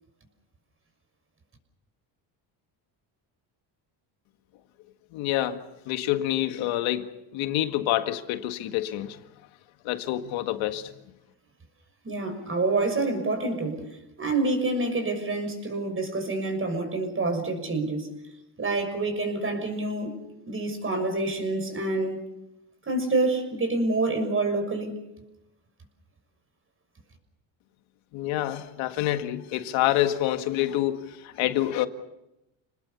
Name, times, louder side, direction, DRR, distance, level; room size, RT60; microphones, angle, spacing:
voice 1, 5.1-9.2 9.8-10.9 28.1-31.9, left 13 dB, 85° left, 1.9 m, -27 dB
voice 2, 12.0-13.9 14.2-18.1 18.6-20.1 20.5-22.2 22.9-25.0, right 2 dB, 25° right, 6.2 m, -27 dB
29.0 x 19.5 x 7.0 m
cardioid pair, 110°, 46 cm